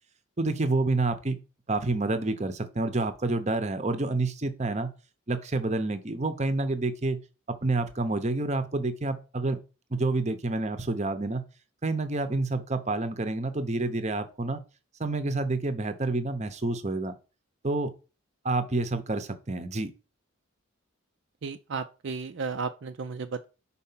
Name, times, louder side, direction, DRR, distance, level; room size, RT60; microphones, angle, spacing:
voice 1, 0.4-1.4 1.7-4.9 5.3-7.2 7.6-9.6 9.9-11.4 11.8-14.6 15.0-17.1 17.6-17.9 18.4-19.9, right 2 dB, 30° right, 0.7 m, -28 dB
voice 2, 21.4-23.5, right 5 dB, 55° right, 0.4 m, -34 dB
5.7 x 4.2 x 5.6 m
head